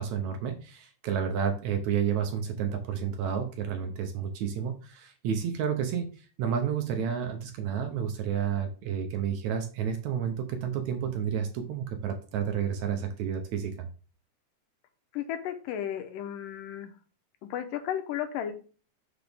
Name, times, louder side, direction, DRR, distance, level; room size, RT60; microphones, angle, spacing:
voice 1, 0.0-13.9, right 8 dB, 70° right, 6 dB, 1.9 m, -31 dB
voice 2, 15.1-16.9 17.5-18.5, left 10 dB, 85° left, 8 dB, 2.5 m, -34 dB
6.0 x 5.9 x 3.5 m, 0.37 s
omnidirectional pair, 3.8 m